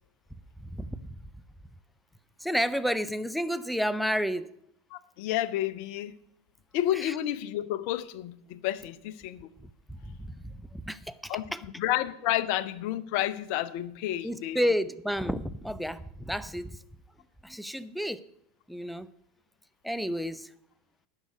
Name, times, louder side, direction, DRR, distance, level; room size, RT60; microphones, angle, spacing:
voice 1, 0.6-1.1 2.4-4.5 6.9-7.1 9.9-11.6 14.2-16.8 17.4-18.2 18.7-19.1 19.8-20.5, equal, ahead, 16 dB, 0.6 m, -31 dB
voice 2, 4.9-6.1 6.7-9.5 11.3-11.4 11.8-14.6, left 13 dB, 55° left, 15 dB, 0.7 m, -30 dB
10.5 x 6.6 x 8.3 m, 0.73 s
figure-of-eight pair, 85°, 0 cm